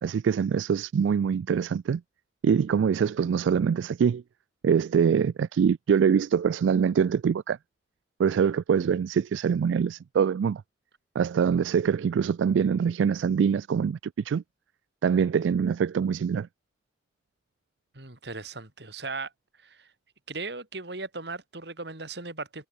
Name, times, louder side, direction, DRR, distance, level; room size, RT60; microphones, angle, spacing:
voice 1, 0.0-2.0 2.4-4.2 4.6-7.6 8.2-10.6 11.2-14.0 14.2-14.4 15.0-16.5, right 7 dB, 85° right, 0.3 m, -24 dB
voice 2, 17.9-19.3 19.6-19.9 20.3-22.7, right 3 dB, 60° right, 2.8 m, -37 dB
head